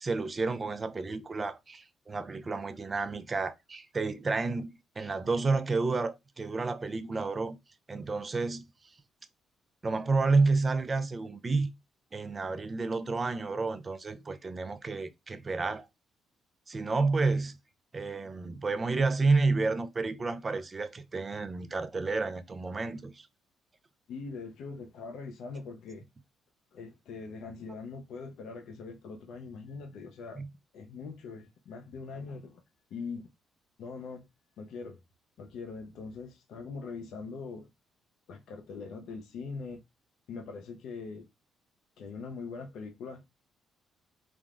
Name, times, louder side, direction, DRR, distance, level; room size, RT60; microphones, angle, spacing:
voice 1, 0.0-7.6 7.9-8.6 9.8-11.7 12.1-15.9 16.7-17.5 17.9-23.3 30.4-30.5, right 3 dB, 30° right, 0.4 m, -30 dB
voice 2, 24.1-26.1 26.7-30.4 30.7-32.6 32.9-33.3 33.8-34.3 34.6-35.0 35.4-37.7 38.3-39.8 40.3-41.3 42.0-43.5, left 4 dB, 80° left, 0.4 m, -42 dB
3.3 x 2.1 x 2.3 m
cardioid pair, 90°, 0 cm